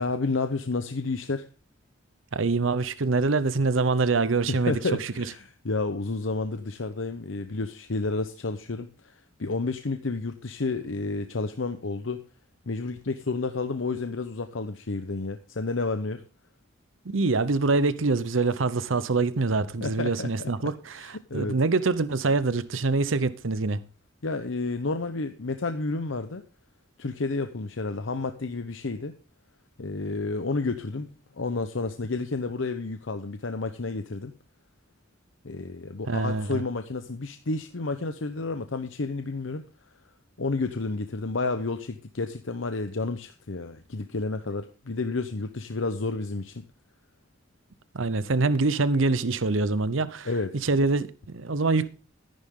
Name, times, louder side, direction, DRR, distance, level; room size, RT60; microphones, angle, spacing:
voice 1, 0.0-1.5 4.7-12.2 12.7-16.2 19.8-20.5 21.0-21.5 24.2-26.4 27.0-29.1 29.8-31.1 31.3-34.3 35.4-39.6 40.4-46.6 50.2-50.5, left 3 dB, 80° left, 0.9 m, -30 dB
voice 2, 2.3-4.7 5.0-5.2 17.0-23.8 36.1-36.6 47.9-50.3 50.6-51.9, right 3 dB, 80° right, 0.8 m, -25 dB
14.0 x 10.5 x 3.8 m
head